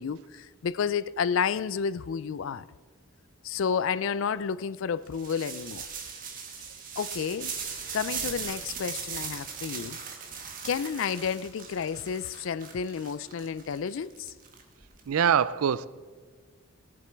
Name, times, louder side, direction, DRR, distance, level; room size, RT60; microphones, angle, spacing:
voice 1, 0.0-2.7 3.4-5.9 7.0-7.5 7.9-10.0 10.6-14.3, left 6 dB, 65° left, 0.4 m, -31 dB
sound 1, 5.1-15.0, right 6 dB, 40° right, 1.4 m, -39 dB
voice 2, 15.1-15.9, right 8 dB, 85° right, 0.4 m, -23 dB
18.0 x 7.6 x 4.5 m
head